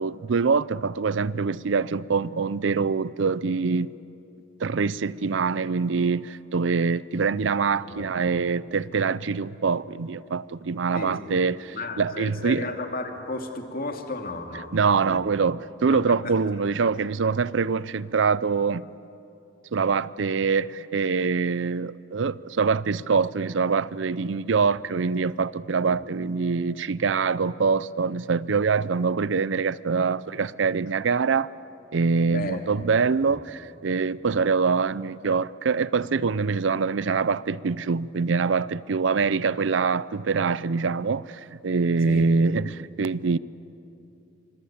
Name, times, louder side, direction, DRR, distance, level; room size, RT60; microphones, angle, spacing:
voice 1, 0.0-3.9 4.6-12.6 14.7-18.9 19.7-31.5 31.9-43.4, right 5 dB, 70° right, 0.5 m, -24 dB
voice 2, 7.8-8.1 10.9-11.4 11.7-15.3 15.9-16.0 16.2-16.3 24.6-24.7 25.8-26.0 32.3-32.8 33.2-33.4 42.0-42.3, left 2 dB, 50° left, 2.5 m, -34 dB
25.5 x 25.5 x 8.7 m
head